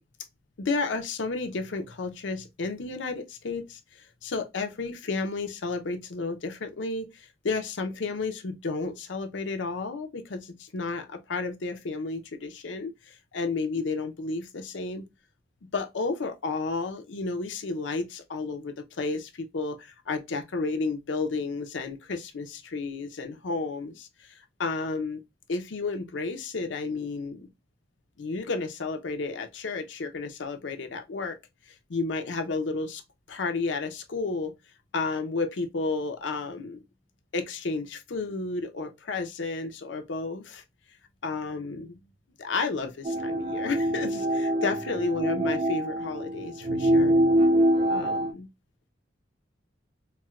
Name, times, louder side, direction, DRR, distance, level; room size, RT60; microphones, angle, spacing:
voice 1, 0.6-3.8 4.2-15.1 15.7-25.2 25.5-27.5 28.2-31.4 31.9-33.0 33.3-34.5 34.9-36.8 37.3-40.6 41.2-42.0 42.4-47.2 47.9-48.5, left 3 dB, 70° left, 0.6 m, -32 dB
sound 1, 43.0-48.3, right 1 dB, 30° right, 0.4 m, -24 dB
4.3 x 2.1 x 2.2 m
head